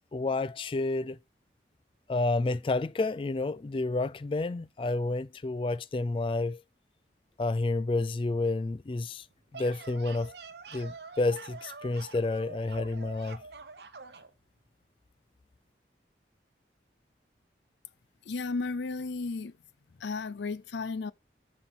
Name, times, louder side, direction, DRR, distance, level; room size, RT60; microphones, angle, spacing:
voice 1, 0.1-1.2 2.1-6.6 7.4-9.3 9.5-10.3 10.7-13.4, left 2 dB, 30° left, 0.3 m, -30 dB
sound 1, 9.3-14.3, right 4 dB, 75° right, 0.9 m, -46 dB
voice 2, 18.3-19.5 20.0-21.1, left 4 dB, 85° left, 0.5 m, -34 dB
7.0 x 4.4 x 5.4 m
head